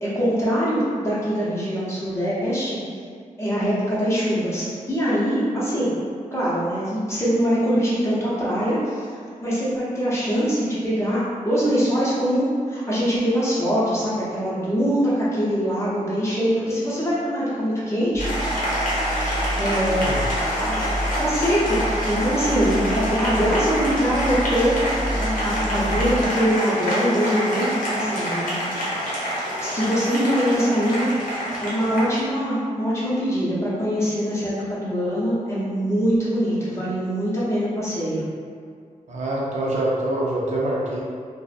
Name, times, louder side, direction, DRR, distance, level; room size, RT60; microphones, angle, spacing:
voice 1, 0.0-2.8 3.4-5.9 6.3-9.1 9.4-18.3 19.6-20.8 21.2-28.9 29.6-38.2, equal, 20° left, -10 dB, 0.7 m, -23 dB
sound 1, 18.1-26.3, right 1 dB, 40° right, 0.8 m, -29 dB
Applause, 18.2-32.2, equal, 85° left, 0.7 m, -27 dB
voice 2, 39.1-41.0, right 1 dB, 55° right, -5 dB, 0.4 m, -25 dB
2.5 x 2.0 x 2.4 m, 2.2 s
wide cardioid pair, 140°, 14 cm